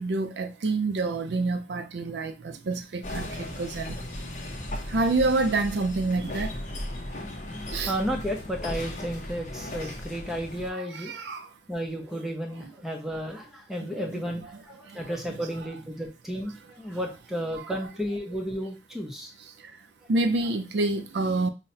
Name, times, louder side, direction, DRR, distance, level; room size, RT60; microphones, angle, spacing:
voice 1, 0.0-4.0 4.9-6.5 7.7-7.9 10.7-11.5 14.0-14.1 15.4-15.5 17.5-17.6 20.1-21.5, right 3 dB, 70° right, 0.4 m, -27 dB
sound 1, 3.0-10.7, left 1 dB, 40° left, 0.7 m, -36 dB
voice 2, 7.9-11.1 11.7-19.3, equal, 5° right, 0.6 m, -33 dB
5.5 x 2.1 x 2.7 m
head